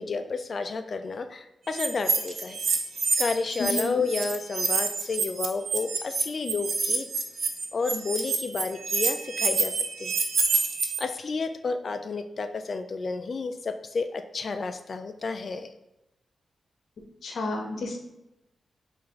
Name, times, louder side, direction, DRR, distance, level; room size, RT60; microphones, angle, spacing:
voice 1, 0.0-2.6 3.2-7.1 7.7-9.7 10.0-10.2 11.0-15.7, left 4 dB, 45° left, 8 dB, 0.3 m, -31 dB
sound 1, 1.7-3.8 4.1-11.0, right 4 dB, 70° right, 0.5 m, -27 dB
voice 2, 3.6-4.0 17.2-18.0, left 2 dB, 70° left, 3 dB, 0.7 m, -31 dB
4.8 x 2.5 x 3.6 m, 0.91 s
wide cardioid pair, 125°, 0 cm